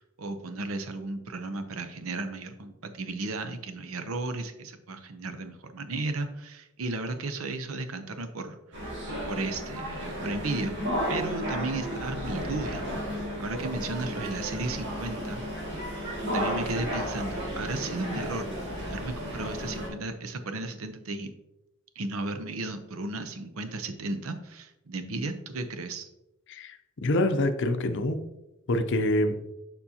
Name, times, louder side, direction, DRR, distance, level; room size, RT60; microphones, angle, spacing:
voice 1, 0.0-8.9 9.3-10.8 11.1-12.8 13.4-15.5 16.3-21.3 22.0-26.1, right 2 dB, 80° right, 9 dB, 0.7 m, -34 dB
sound 1, 8.7-19.9, equal, 60° right, 2.3 m, -33 dB
voice 2, 27.0-28.2 28.7-29.4, left 1 dB, 60° left, 8 dB, 0.6 m, -25 dB
6.9 x 5.3 x 2.8 m, 0.95 s
head